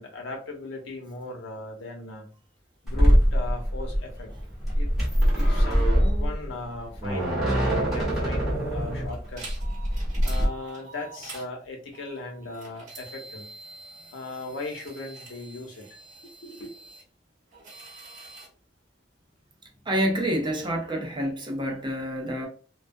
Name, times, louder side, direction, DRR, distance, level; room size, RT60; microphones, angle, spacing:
voice 1, 0.0-2.3 2.8-4.3 4.7-4.9 5.4-9.4 10.2-13.5 14.1-16.0 16.4-16.7, left 2 dB, 80° left, 0.7 m, -38 dB
sound 1, 2.9-10.5, equal, ahead, 1.0 m, -23 dB
sound 2, 9.1-11.5 11.9-17.0 17.5-18.5, right 3 dB, 40° right, 1.0 m, -46 dB
voice 2, 19.9-22.5, equal, 25° right, 0.5 m, -27 dB
2.3 x 2.1 x 2.5 m
head